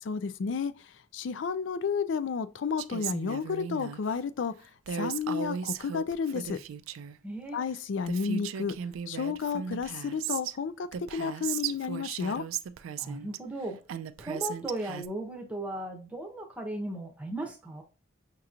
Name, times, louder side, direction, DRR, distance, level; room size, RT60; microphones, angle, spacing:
voice 1, 0.0-0.7 1.1-4.5 4.9-6.6 7.5-8.7 9.1-12.4, left 6 dB, 65° left, 0.4 m, -31 dB
Female speech woman speaking, 2.8-4.0 4.9-7.2 7.8-7.9 8.1-10.6 10.9-13.4 13.9-15.1, right 8 dB, 85° right, 0.3 m, -36 dB
voice 2, 7.2-7.6 13.0-13.8 14.2-17.8, right 1 dB, 5° right, 0.8 m, -36 dB
5.9 x 2.9 x 2.4 m
head